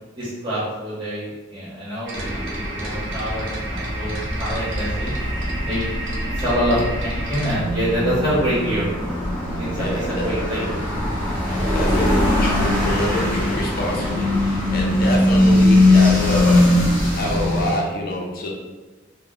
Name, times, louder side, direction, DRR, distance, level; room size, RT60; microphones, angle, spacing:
voice 1, 0.2-5.1 5.6-5.9 6.3-8.9 9.6-10.8, equal, 25° right, -11 dB, 1.0 m, -26 dB
sound 1, 2.0-7.6, right 2 dB, 65° right, 0.7 m, -33 dB
sound 2, 2.1-17.7, left 1 dB, 10° left, 0.8 m, -21 dB
voice 2, 9.7-10.3 11.5-18.5, left 1 dB, 45° left, -2 dB, 0.5 m, -27 dB
2.3 x 2.1 x 3.7 m, 1.3 s
head